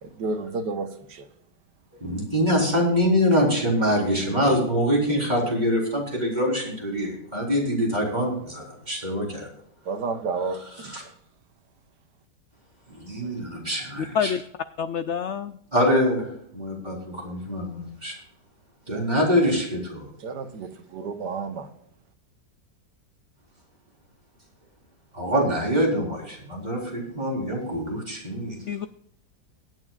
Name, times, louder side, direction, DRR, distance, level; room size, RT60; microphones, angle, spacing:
voice 1, 0.0-1.3 9.8-10.9 20.2-21.7, right 4 dB, 80° right, 1.8 m, -31 dB
voice 2, 2.0-9.5 10.8-11.0 12.9-14.3 15.7-16.3 16.5-18.2 18.9-20.1 25.1-28.5, equal, 25° right, 4.3 m, -24 dB
voice 3, 14.0-14.4 14.8-15.6 28.7-28.9, left 7 dB, 75° left, 0.6 m, -27 dB
22.5 x 9.2 x 2.4 m
omnidirectional pair, 1.8 m